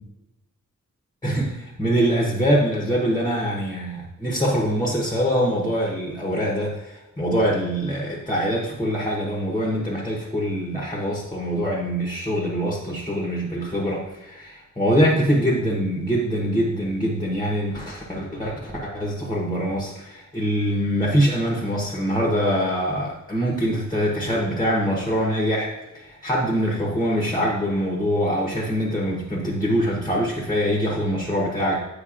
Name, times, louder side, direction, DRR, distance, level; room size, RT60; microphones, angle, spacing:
voice 1, 1.2-31.8, equal, 10° left, -3 dB, 0.9 m, -24 dB
8.3 x 5.1 x 2.5 m, 1.0 s
wide cardioid pair, 175°, 31 cm